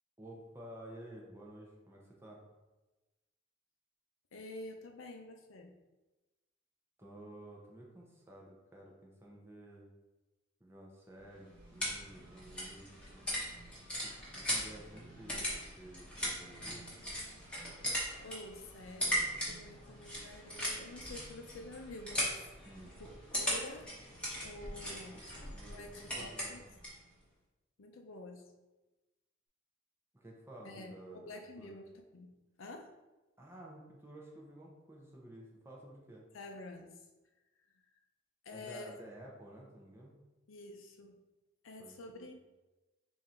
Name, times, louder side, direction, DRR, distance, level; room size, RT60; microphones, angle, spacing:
voice 1, 0.2-2.4 7.0-9.9 10.6-13.3 14.0-17.1 22.6-23.0 25.5-26.6 30.1-31.8 33.4-36.3 38.5-40.1 41.8-42.3, right 1 dB, 10° right, -3 dB, 0.6 m, -52 dB
voice 2, 4.3-5.8 18.2-22.7 23.0-23.9 24.4-25.3 25.7-26.6 27.8-28.5 30.6-32.3 32.6-32.9 36.3-37.0 38.4-38.9 40.5-41.2 41.6-42.3, left 2 dB, 80° left, 4 dB, 0.6 m, -49 dB
sound 1, 11.2-27.0, equal, 5° left, 0.9 m, -39 dB
3.7 x 2.7 x 4.3 m, 1.1 s
head